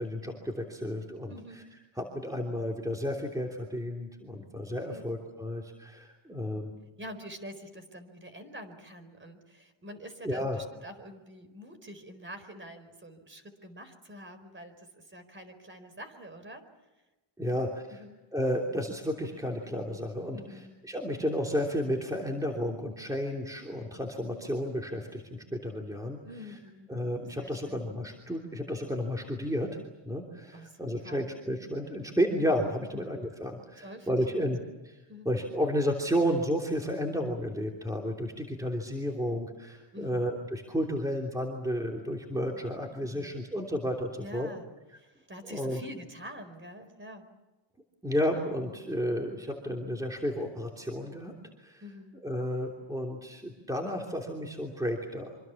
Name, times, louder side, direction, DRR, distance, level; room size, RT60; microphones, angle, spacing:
voice 1, 0.0-1.3 2.0-6.7 10.2-10.6 17.4-18.0 18.3-26.2 26.9-29.8 30.0-34.6 35.2-44.5 45.5-45.8 48.0-51.3 51.6-51.8 52.2-55.3, equal, 5° right, 1 dB, 3.1 m, -32 dB
voice 2, 1.3-1.6 4.8-5.1 7.0-16.6 17.4-17.6 17.9-18.2 20.3-20.7 26.2-26.9 27.4-27.9 30.5-31.3 32.9-33.1 33.8-34.5 35.1-35.3 39.9-40.3 43.0-43.4 44.2-44.6 45.0-47.3 48.6-48.9 51.8-52.1, equal, 25° right, 9 dB, 4.4 m, -46 dB
26.0 x 25.5 x 7.2 m, 1.1 s
cardioid pair, 130°, 47 cm